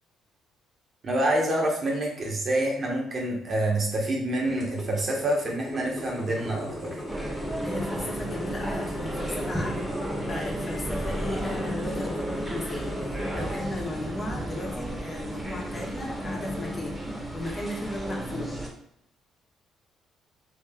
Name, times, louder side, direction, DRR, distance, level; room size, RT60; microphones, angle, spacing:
voice 1, 1.0-7.0, right 1 dB, 45° right, -1 dB, 1.3 m, -27 dB
sound 1, 4.5-13.6, left 1 dB, 10° left, 1.3 m, -37 dB
sound 2, 7.1-18.7, right 1 dB, 10° right, 1.3 m, -33 dB
voice 2, 7.6-9.9 10.3-17.0 17.3-18.6, left 1 dB, 35° left, -2 dB, 1.3 m, -35 dB
3.1 x 3.1 x 3.7 m, 0.75 s
hypercardioid pair, 55°, 0 cm